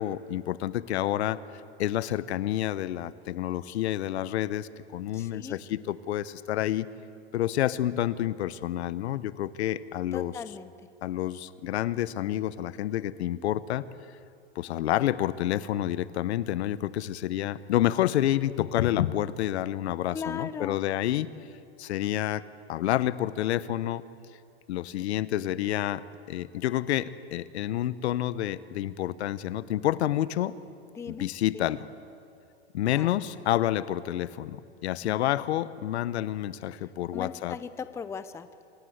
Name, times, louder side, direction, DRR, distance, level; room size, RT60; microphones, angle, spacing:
voice 1, 0.0-1.4 1.8-6.9 7.3-10.3 11.0-13.9 14.5-21.3 21.8-22.4 22.7-24.0 24.7-26.0 26.3-30.6 31.1-31.8 32.7-37.6, left 13 dB, 80° left, 16 dB, 1.0 m, -29 dB
voice 2, 5.1-5.6 10.1-10.7 20.1-20.8 30.9-31.3 31.5-31.6 32.9-33.1 37.1-38.5, left 6 dB, 10° left, 12 dB, 0.5 m, -38 dB
26.5 x 20.0 x 8.0 m, 2.5 s
supercardioid pair, 140°, 33 cm